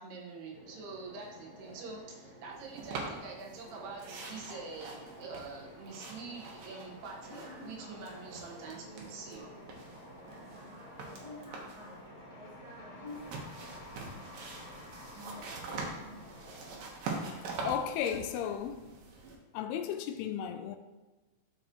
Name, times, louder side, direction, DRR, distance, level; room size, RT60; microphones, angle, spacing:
voice 1, 0.0-9.5, right 4 dB, 85° right, 3.5 m, -45 dB
sound 1, 0.5-16.8, equal, 40° right, 1.3 m, -50 dB
sound 2, 2.4-2.9 3.2-18.4, left 2 dB, 55° left, 1.2 m, -55 dB
sound 3, 2.8-3.7 4.0-7.7 8.0-9.4 9.7-11.9 13.1-19.4, right 3 dB, 70° right, 2.7 m, -43 dB
voice 2, 17.3-18.9 19.5-20.8, left 9 dB, 90° left, 2.6 m, -35 dB
13.5 x 4.9 x 3.0 m
omnidirectional pair, 4.5 m